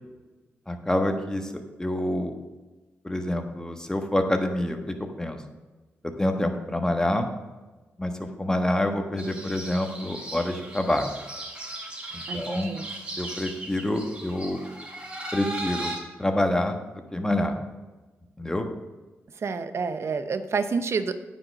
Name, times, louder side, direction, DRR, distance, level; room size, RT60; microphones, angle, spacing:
voice 1, 0.7-1.5 1.8-2.3 3.0-5.4 6.0-7.3 8.0-11.1 12.1-12.7 13.2-14.6 15.3-15.9 16.2-16.8 17.1-17.6 18.4-18.7, left 1 dB, 10° left, 4 dB, 1.3 m, -27 dB
sound 1, 9.2-16.0, right 1 dB, 20° right, 3.5 m, -37 dB
voice 2, 12.3-12.9 19.3-21.1, right 5 dB, 60° right, 11 dB, 0.7 m, -29 dB
9.4 x 5.5 x 6.3 m, 1.2 s
cardioid pair, 60°, 5 cm